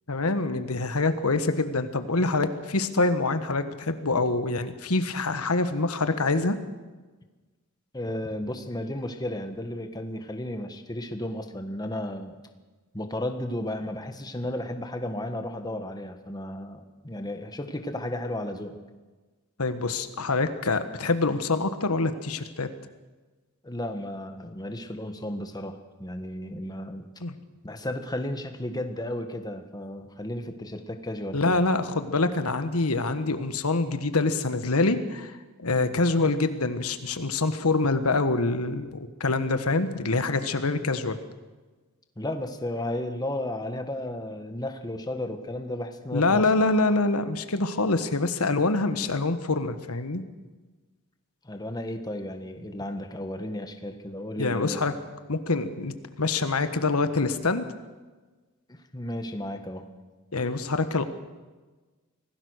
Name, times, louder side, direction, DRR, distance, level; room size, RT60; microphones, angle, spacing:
voice 1, 0.1-6.6 19.6-22.7 27.2-27.3 31.3-35.3 35.6-41.2 46.1-50.2 54.4-54.9 55.3-55.9 56.2-57.7 60.3-61.1, left 3 dB, 85° left, 10 dB, 1.4 m, -25 dB
voice 2, 7.9-12.4 12.9-18.8 23.6-27.1 27.6-31.6 42.2-46.4 51.4-54.8 58.9-59.9, left 1 dB, 20° left, 6 dB, 1.6 m, -33 dB
25.0 x 17.5 x 6.5 m, 1.3 s
head